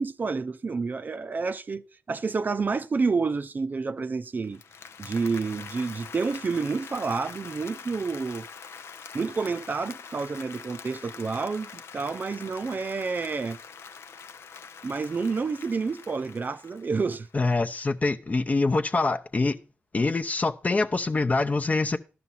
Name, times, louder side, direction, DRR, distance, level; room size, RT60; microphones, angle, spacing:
voice 1, 0.0-4.6 5.0-8.5 9.1-13.6 14.8-17.3, right 4 dB, 45° right, 0.5 m, -29 dB
Applause, 4.4-17.5, left 6 dB, 75° left, 0.6 m, -44 dB
voice 2, 17.3-19.6 19.9-22.0, left 3 dB, 35° left, 0.7 m, -25 dB
11.5 x 6.1 x 5.5 m
cardioid pair, 65°, 4 cm